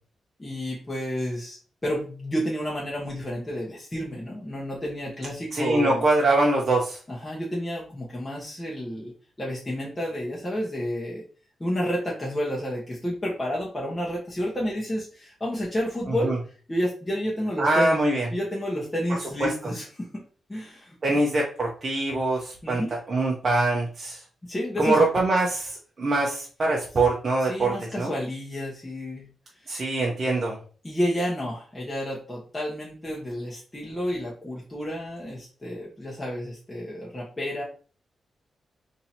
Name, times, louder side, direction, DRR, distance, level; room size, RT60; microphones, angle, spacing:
voice 1, 0.4-6.0 7.1-9.1 9.4-11.2 11.6-16.3 16.7-18.0 18.3-20.2 20.5-21.2 22.6-22.9 24.4-25.0 27.5-29.3 29.6-29.7 30.8-37.6, equal, 15° left, -5 dB, 1.0 m, -30 dB
voice 2, 5.5-7.0 16.1-16.4 17.6-18.3 19.4-19.5 21.0-22.8 23.1-24.2 24.8-28.1 29.7-30.6, right 2 dB, 40° right, -3 dB, 0.7 m, -23 dB
2.8 x 2.7 x 4.2 m, 0.39 s
wide cardioid pair, 130°, 0 cm